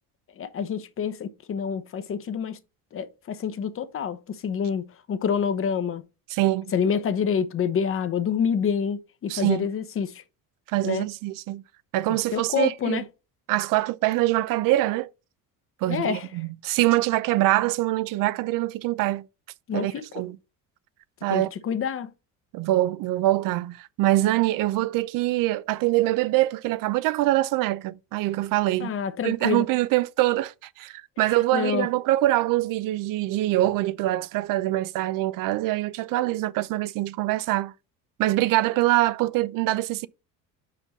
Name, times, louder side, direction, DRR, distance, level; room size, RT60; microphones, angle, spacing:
voice 1, 0.4-2.6 2.9-6.0 6.7-10.2 10.8-11.1 12.1-13.0 15.9-16.3 19.7-20.0 21.3-22.1 28.8-29.6 31.5-31.9, left 7 dB, 40° left, 0.8 m, -27 dB
voice 2, 6.3-6.7 9.3-9.7 10.7-11.6 11.9-13.0 13.5-15.1 15.8-19.2 19.7-20.4 21.2-21.5 22.5-29.0 29.2-37.7 38.2-40.1, right 16 dB, 70° right, 0.5 m, -24 dB
5.2 x 5.0 x 5.6 m
cardioid pair, 120°, 35 cm